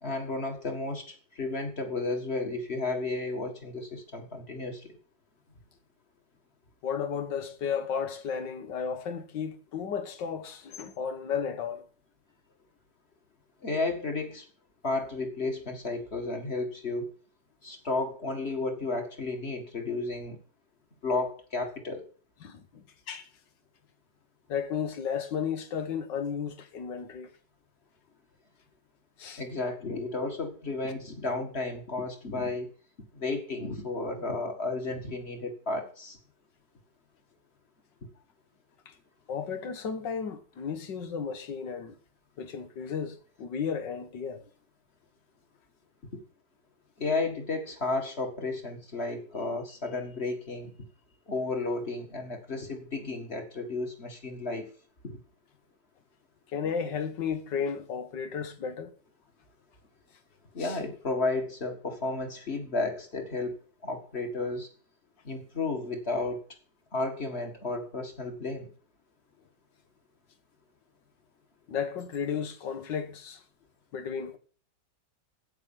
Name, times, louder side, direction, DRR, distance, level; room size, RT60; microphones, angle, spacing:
voice 1, 0.0-4.9 13.6-14.5 14.8-17.1 17.6-20.4 21.0-22.0 29.4-32.7 33.1-36.2 47.0-50.7 51.3-54.7 55.0-55.1 60.5-63.6 63.8-64.7 65.2-66.4 66.9-68.7, left 3 dB, 35° left, 2.1 m, -32 dB
voice 2, 6.8-11.9 22.4-23.3 24.5-27.3 29.2-29.4 38.9-39.0 39.3-42.0 42.4-44.4 56.5-58.9 60.6-60.8 71.7-73.4 73.9-74.4, left 7 dB, 85° left, 1.9 m, -34 dB
9.2 x 8.5 x 7.3 m
omnidirectional pair, 1.9 m